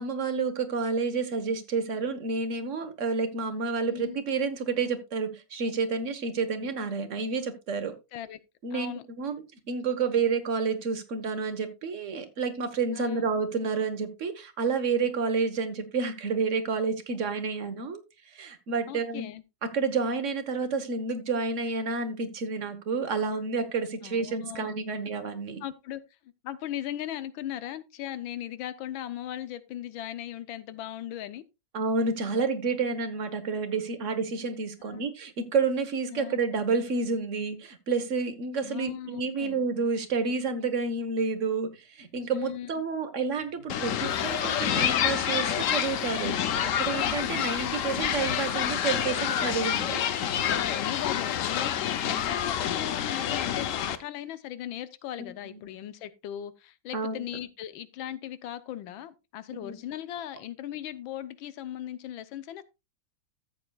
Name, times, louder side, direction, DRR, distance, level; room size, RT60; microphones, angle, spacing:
voice 1, 0.0-7.9 8.6-18.0 18.3-19.3 19.7-25.6 31.7-50.0 55.2-55.3 56.9-57.2 59.5-59.7, right 4 dB, 45° right, 1.2 m, -30 dB
voice 2, 3.9-4.2 6.6-6.7 8.1-8.4 8.7-9.0 13.0-13.3 18.9-19.4 24.0-24.7 25.6-26.0 26.4-31.4 34.8-35.0 36.1-36.4 38.6-39.6 42.3-42.7 50.7-62.6, left 12 dB, 85° left, 1.5 m, -38 dB
sound 1, 43.7-54.0, left 9 dB, 70° left, 0.7 m, -28 dB
13.5 x 7.8 x 2.3 m
omnidirectional pair, 2.1 m